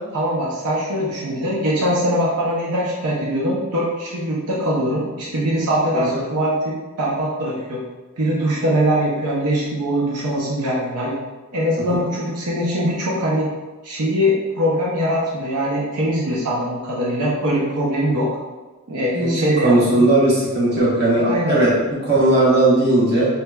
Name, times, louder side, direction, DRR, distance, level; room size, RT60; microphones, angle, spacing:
voice 1, 0.1-7.8 8.2-11.2 11.5-13.5 13.8-18.3 18.9-20.0 21.3-21.6, equal, 85° right, -5 dB, 0.6 m, -22 dB
voice 2, 19.1-21.7 22.0-23.3, right 2 dB, 45° right, -7 dB, 0.9 m, -17 dB
3.2 x 2.8 x 2.2 m, 1.2 s
head